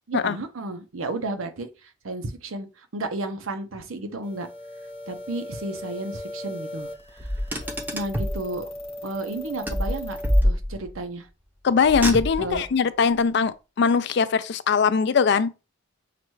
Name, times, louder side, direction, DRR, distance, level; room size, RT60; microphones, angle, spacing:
voice 1, 0.1-4.5 5.1-7.3 7.9-8.7 9.0-10.2 10.4-11.3 12.4-12.7, right 2 dB, 90° right, 0.8 m, -33 dB
sound 1, 4.2-10.4, left 1 dB, 30° left, 1.0 m, -38 dB
Car, 7.2-8.4 9.7-11.0 11.8-12.7, equal, 10° right, 0.6 m, -25 dB
voice 2, 11.6-15.5, left 5 dB, 55° left, 0.4 m, -21 dB
5.7 x 2.3 x 3.1 m
head